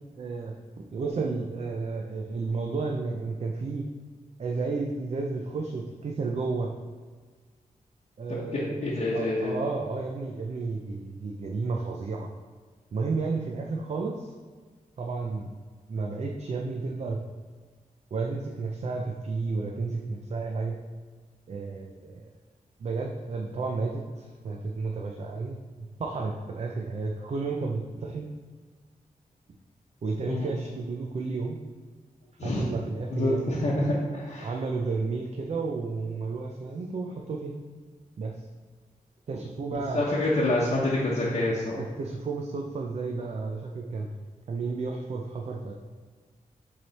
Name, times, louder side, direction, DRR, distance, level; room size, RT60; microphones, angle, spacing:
voice 1, 0.2-3.9 4.4-6.7 8.2-8.8 9.1-12.3 12.9-14.3 15.0-15.5 15.9-17.2 18.1-20.8 21.5-22.3 22.8-25.6 26.0-28.3 30.0-31.6 32.4-33.7 34.4-37.5 38.2-38.5 39.3-40.0 41.7-44.1 44.5-45.7, right 4 dB, 50° right, 1 dB, 0.5 m, -32 dB
voice 2, 8.3-9.6 30.3-30.5 32.4-32.7 33.1-34.5 39.9-41.8, left 1 dB, 50° left, -7 dB, 0.9 m, -27 dB
7.4 x 3.3 x 4.1 m, 1.4 s
wide cardioid pair, 140°, 14 cm